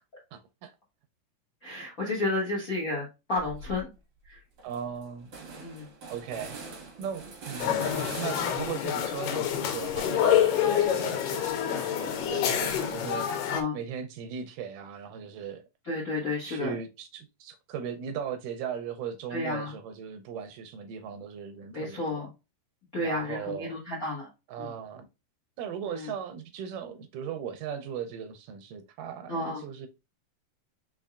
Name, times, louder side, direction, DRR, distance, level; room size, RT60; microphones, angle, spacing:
voice 1, 0.3-0.7 4.6-5.3 6.1-6.6 7.0-13.3 13.7-15.6 16.5-22.3 23.0-23.8 24.5-25.1 25.6-29.9, right 7 dB, 80° right, 2.0 m, -38 dB
voice 2, 1.6-3.9 4.2-4.4 5.6-5.9 10.0-10.3 13.5-13.8 15.9-16.8 19.3-19.7 21.7-22.3 22.9-24.3 24.6-24.7 25.9-26.1 29.3-29.6, left 2 dB, 50° left, 1.0 m, -32 dB
sound 1, 3.4-3.8 4.2-4.3 4.6-9.0 9.4-11.5, right 3 dB, 55° right, 1.3 m, -44 dB
sound 2, 7.6-13.6, left 9 dB, 75° left, 2.4 m, -27 dB
5.4 x 3.9 x 2.3 m
omnidirectional pair, 4.0 m